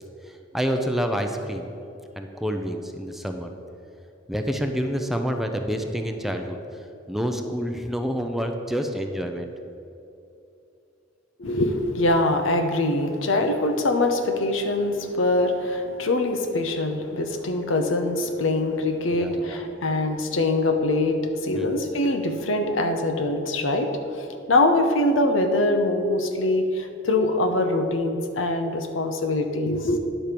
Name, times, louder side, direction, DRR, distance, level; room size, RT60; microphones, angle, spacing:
voice 1, 0.3-1.7 2.2-3.5 4.3-6.6 7.1-9.5 14.9-15.0 19.1-19.6 21.5-21.8, equal, ahead, 4 dB, 0.5 m, -28 dB
voice 2, 11.4-30.0, left 2 dB, 75° left, 6 dB, 0.9 m, -23 dB
10.0 x 4.5 x 6.8 m, 2.7 s
head